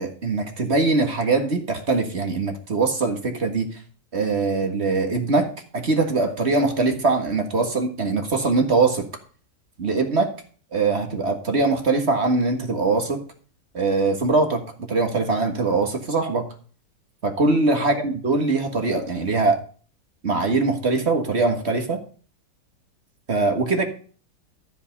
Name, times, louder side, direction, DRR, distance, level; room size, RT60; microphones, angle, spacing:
voice 1, 0.0-3.7 4.1-9.1 9.8-10.3 10.7-13.2 13.7-16.5 17.2-19.6 20.2-22.0 23.3-23.8, right 3 dB, 40° right, 5 dB, 1.8 m, -22 dB
13.5 x 5.4 x 5.2 m, 0.41 s
omnidirectional pair, 1.9 m